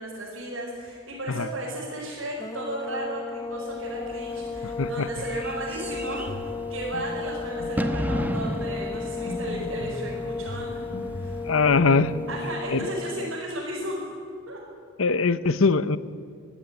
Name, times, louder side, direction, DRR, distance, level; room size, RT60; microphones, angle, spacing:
voice 1, 0.0-10.8 11.1-11.4 12.3-14.1 14.5-14.6, right 1 dB, 70° right, -5 dB, 5.8 m, -34 dB
sound 1, 2.4-13.4, left 4 dB, 15° left, 0.5 m, -34 dB
Bird / Fireworks, 3.7-12.9, equal, 10° right, 1.1 m, -36 dB
sound 2, 6.3-6.5 6.9-7.1 7.6-8.3 9.3-10.0 10.5-11.4, left 1 dB, 50° left, 1.6 m, -35 dB
voice 2, 11.5-12.1 12.7-12.9 15.0-16.0, left 4 dB, 90° left, 14 dB, 0.9 m, -21 dB
24.5 x 14.5 x 9.6 m, 2.3 s
head